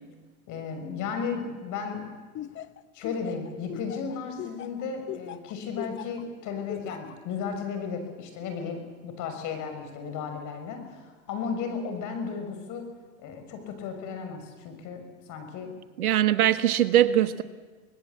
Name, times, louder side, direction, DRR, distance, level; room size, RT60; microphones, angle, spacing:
voice 1, 0.5-2.2 2.9-12.9 13.2-15.7, left 5 dB, 45° left, 6 dB, 6.3 m, -34 dB
Laughter, 2.3-6.2 6.7-7.1, left 11 dB, 25° left, 1.1 m, -38 dB
voice 2, 16.0-17.4, right 11 dB, 85° right, 12 dB, 1.5 m, -21 dB
26.0 x 19.5 x 8.4 m, 1.4 s
hypercardioid pair, 115°, 43 cm